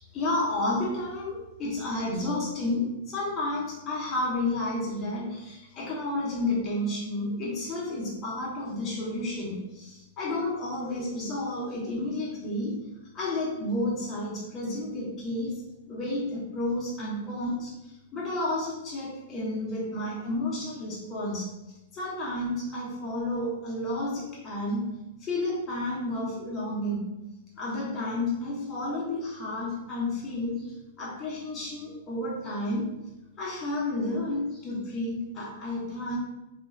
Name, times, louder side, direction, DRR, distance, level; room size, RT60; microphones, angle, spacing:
voice 1, 0.0-12.8 13.1-15.6 15.9-21.5 21.9-24.9 25.2-27.1 27.6-30.7 31.0-32.9 33.4-36.2, left 2 dB, 30° left, -6 dB, 0.9 m, -31 dB
3.0 x 2.4 x 2.3 m, 0.97 s
hypercardioid pair, 105°, 0 cm